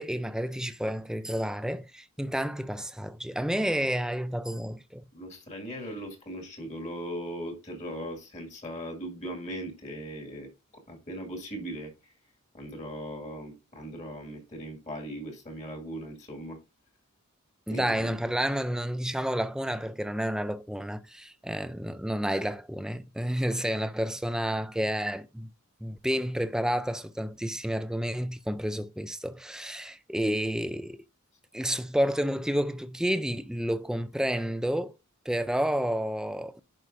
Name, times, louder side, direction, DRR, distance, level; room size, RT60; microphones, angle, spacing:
voice 1, 0.0-5.0 17.7-25.5 25.8-31.0 31.5-34.9 35.3-36.6, equal, 5° right, 0.4 m, -30 dB
voice 2, 5.1-10.5 10.9-11.9 12.5-16.6 17.7-18.2, equal, 35° left, 2.0 m, -39 dB
11.0 x 4.8 x 2.6 m
head